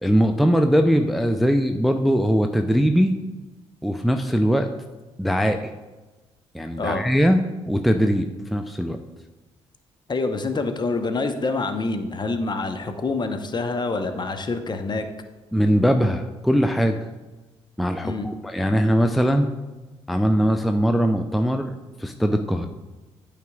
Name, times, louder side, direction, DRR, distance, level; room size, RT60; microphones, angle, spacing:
voice 1, 0.0-3.2 3.8-4.7 5.2-5.7 6.5-9.0 15.5-17.0 17.8-19.5 20.1-22.7, equal, ahead, 6 dB, 0.5 m, -21 dB
voice 2, 10.1-15.1 18.0-18.3, left 3 dB, 30° left, 8 dB, 0.8 m, -26 dB
12.0 x 5.0 x 2.3 m, 1.2 s
figure-of-eight pair, 40°, 15 cm